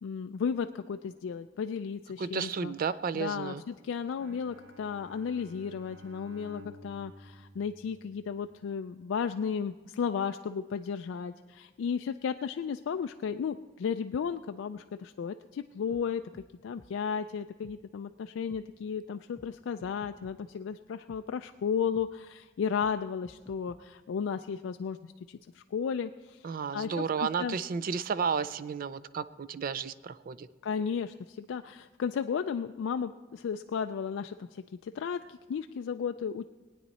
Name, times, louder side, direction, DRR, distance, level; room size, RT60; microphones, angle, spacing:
voice 1, 0.0-2.7 3.1-16.2 16.6-26.5 26.7-27.6 30.6-36.5, left 6 dB, 70° left, 8 dB, 0.3 m, -34 dB
voice 2, 2.2-3.6 26.4-30.5, right 6 dB, 45° right, 15 dB, 0.3 m, -32 dB
Bowed string instrument, 4.2-8.6, left 1 dB, 70° right, 1.2 m, -52 dB
sound 1, 15.9-16.0 16.3-16.5 16.8-16.9 17.6-17.8 18.5-18.6 19.4-19.5 19.8-20.4 21.1-21.2 21.9-22.1 22.8-22.9 23.2-23.8, left 1 dB, 15° left, 0.5 m, -53 dB
20.0 x 9.3 x 4.1 m, 1.4 s
head